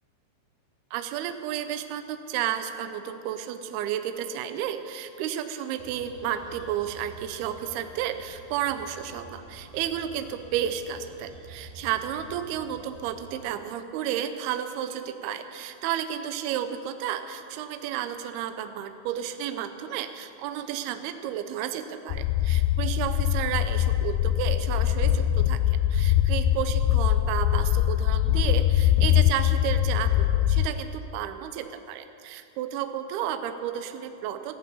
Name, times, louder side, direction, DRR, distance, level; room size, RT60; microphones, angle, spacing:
voice 1, 0.9-34.5, right 10 dB, 80° right, 8 dB, 2.4 m, -32 dB
sound 1, 5.8-13.4, right 1 dB, 55° right, 5.6 m, -48 dB
sound 2, 22.1-30.7, left 12 dB, 80° left, 2.4 m, -23 dB
14.5 x 11.0 x 8.2 m, 2.6 s
omnidirectional pair, 5.2 m